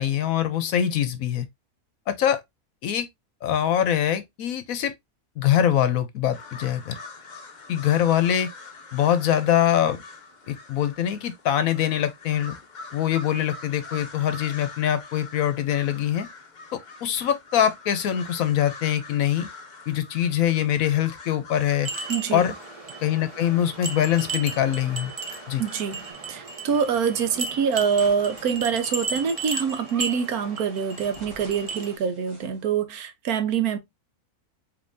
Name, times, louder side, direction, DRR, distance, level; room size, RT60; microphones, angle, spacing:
voice 1, 0.0-1.5 2.1-2.4 2.8-3.1 3.4-4.9 5.4-6.9 7.7-8.5 8.9-10.0 10.5-12.5 12.9-16.3 16.7-19.5 19.9-21.9 22.3-22.5 23.0-25.1 25.5-25.6, left 10 dB, 70° left, 1.0 m, -23 dB
sound 1, 6.3-26.1, left 3 dB, 45° left, 0.6 m, -44 dB
sound 2, 21.8-31.9, right 4 dB, 35° right, 0.6 m, -35 dB
voice 2, 22.1-22.5 25.6-33.8, right 7 dB, 75° right, 1.3 m, -25 dB
sound 3, 27.7-32.8, equal, 15° right, 2.3 m, -51 dB
5.2 x 3.0 x 2.6 m
omnidirectional pair, 1.6 m